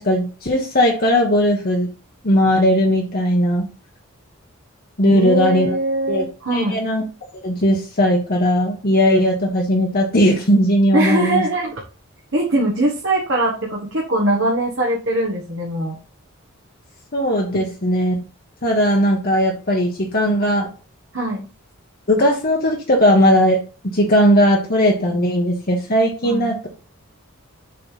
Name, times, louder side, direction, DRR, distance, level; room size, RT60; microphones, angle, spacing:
voice 1, 0.0-1.9 2.2-3.7 5.0-5.8 6.1-6.2 6.5-7.0 7.4-11.4 17.1-18.2 18.6-20.7 22.1-23.6 23.9-26.7, equal, 45° left, 0 dB, 1.3 m, -17 dB
voice 2, 5.0-6.8 10.9-11.8 12.3-16.0 21.1-21.5 26.2-26.6, right 1 dB, 60° right, -2 dB, 1.4 m, -21 dB
7.6 x 3.4 x 5.8 m, 0.36 s
head